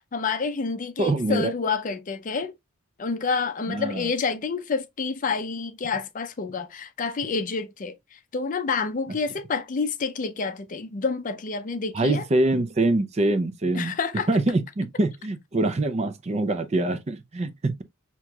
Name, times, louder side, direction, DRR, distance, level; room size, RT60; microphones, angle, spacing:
voice 1, 0.1-2.5 3.0-12.3 13.7-14.3, left 4 dB, 40° left, 0.5 m, -28 dB
voice 2, 1.0-1.5 3.7-4.1 11.9-13.9 14.3-17.8, right 2 dB, 30° right, 0.4 m, -24 dB
6.1 x 2.9 x 2.3 m
head